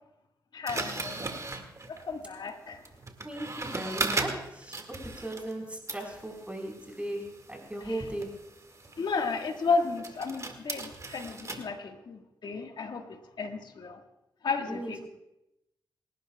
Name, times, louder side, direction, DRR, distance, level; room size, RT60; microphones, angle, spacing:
voice 1, 0.5-1.4 1.9-2.8 7.8-8.0 9.0-13.0 13.4-14.0 14.4-15.1, left 4 dB, 65° left, 4 dB, 1.7 m, -33 dB
sound 1, 0.7-5.6 5.9-11.6, right 3 dB, 40° right, 2.1 m, -38 dB
voice 2, 3.2-7.2 7.5-8.3 14.7-15.1, right 1 dB, 15° right, 1 dB, 4.6 m, -37 dB
27.5 x 11.5 x 2.4 m, 0.87 s
supercardioid pair, 45°, 8 cm